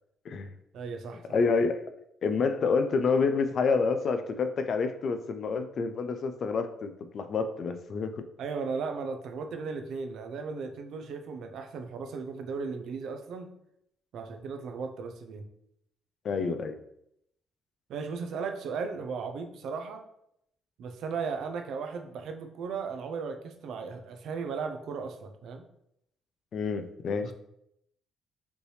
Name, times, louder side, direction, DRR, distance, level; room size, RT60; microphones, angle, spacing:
voice 1, 0.7-1.2 8.4-13.5 14.1-15.5 17.9-20.0 20.8-25.6 27.2-27.3, right 5 dB, 75° right, 6 dB, 0.6 m, -36 dB
voice 2, 1.3-1.8 2.2-8.3 16.2-16.8 26.5-27.3, left 4 dB, 55° left, 8 dB, 0.5 m, -28 dB
5.1 x 3.2 x 3.2 m, 0.77 s
cardioid pair, 100°, 0 cm